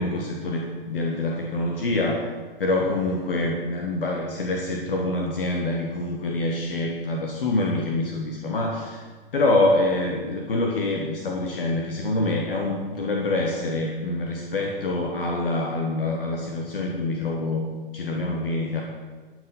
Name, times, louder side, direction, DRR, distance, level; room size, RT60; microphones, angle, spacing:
voice 1, 0.0-2.3 2.6-9.0 9.3-17.7 17.9-18.8, left 2 dB, 70° left, 1 dB, 1.4 m, -25 dB
12.0 x 6.2 x 5.6 m, 1.4 s
figure-of-eight pair, 95°, 29 cm